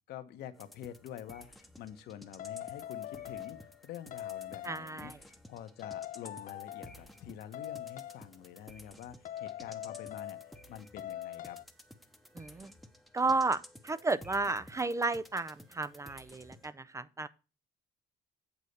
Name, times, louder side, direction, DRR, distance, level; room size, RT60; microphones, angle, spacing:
voice 1, 0.1-11.6, left 10 dB, 75° left, 1.0 m, -47 dB
sound 1, 0.5-16.7, equal, ahead, 0.9 m, -55 dB
sound 2, 2.4-3.8 4.1-5.0 5.8-7.1 7.5-8.3 9.2-10.7 11.0-11.6, left 12 dB, 55° left, 0.5 m, -42 dB
voice 2, 4.6-5.2 12.4-12.7 13.1-17.3, right 3 dB, 20° right, 0.4 m, -33 dB
8.4 x 4.1 x 6.6 m
cardioid pair, 110°, 17 cm